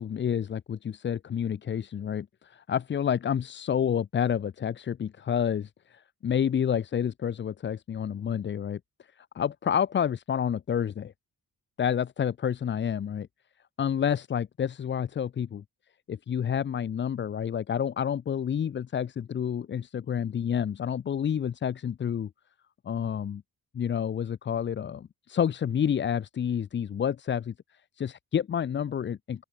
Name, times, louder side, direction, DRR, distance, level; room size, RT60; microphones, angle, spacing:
voice 1, 0.0-8.8 9.2-11.1 11.8-13.3 13.8-15.6 16.1-22.3 22.8-23.4 23.7-27.5 28.0-29.4, left 8 dB, 30° left, 0.4 m, -29 dB
open air
wide cardioid pair, 175°, 38 cm